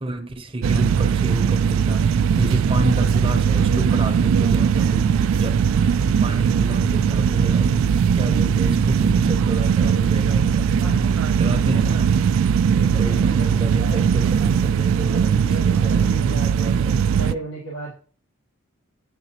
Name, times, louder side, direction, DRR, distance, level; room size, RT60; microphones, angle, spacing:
voice 1, 0.0-5.6 6.2-10.8 11.3-12.2 12.9-16.3 16.6-17.3, right 2 dB, 25° right, 0.7 m, -30 dB
sound 1, 0.6-17.3, right 7 dB, 75° right, 0.3 m, -19 dB
sound 2, 1.9-11.7, left 1 dB, 55° left, 0.5 m, -35 dB
voice 2, 10.8-11.5 12.6-14.4 14.9-16.8 17.1-17.9, right 2 dB, 85° left, 2.1 m, -36 dB
9.3 x 4.0 x 2.9 m
head